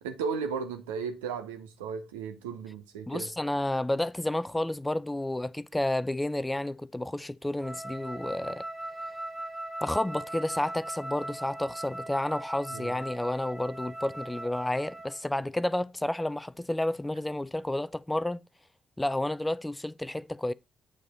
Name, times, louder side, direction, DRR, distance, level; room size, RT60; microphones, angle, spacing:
voice 1, 0.0-3.3 12.7-12.9, right 5 dB, 75° right, 0.9 m, -35 dB
voice 2, 3.1-8.6 9.8-18.4 19.0-20.5, left 1 dB, 10° left, 0.4 m, -31 dB
Wind instrument woodwind instrument, 7.6-15.2, right 1 dB, 5° right, 2.3 m, -39 dB
8.6 x 4.8 x 4.2 m
figure-of-eight pair, 40°, 0 cm